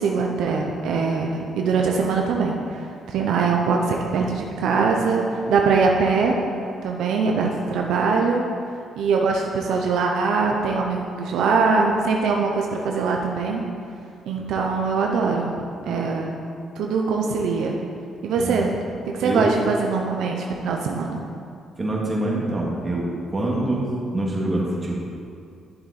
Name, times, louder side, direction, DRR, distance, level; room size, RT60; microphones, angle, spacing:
voice 1, 0.0-6.4 6.8-8.4 9.0-13.6 14.3-15.5 15.9-16.4 16.8-17.8 18.2-18.7 19.1-21.2, right 4 dB, 80° right, 1 dB, 0.9 m, -22 dB
voice 2, 21.8-25.0, right 1 dB, 25° right, -4 dB, 2.5 m, -25 dB
11.0 x 7.3 x 4.3 m, 2.4 s
cardioid pair, 90°, 0 cm